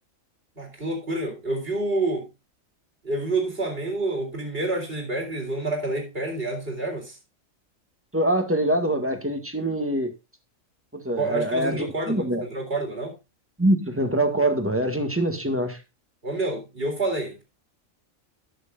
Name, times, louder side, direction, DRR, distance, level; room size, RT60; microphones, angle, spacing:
voice 1, 0.6-2.3 3.0-7.2 11.2-13.1 16.2-17.4, right 2 dB, 45° right, 2 dB, 4.1 m, -28 dB
voice 2, 8.1-10.1 10.9-12.4 13.6-15.8, right 1 dB, 10° right, 5 dB, 1.7 m, -24 dB
19.0 x 6.7 x 2.5 m, 0.26 s
omnidirectional pair, 1.4 m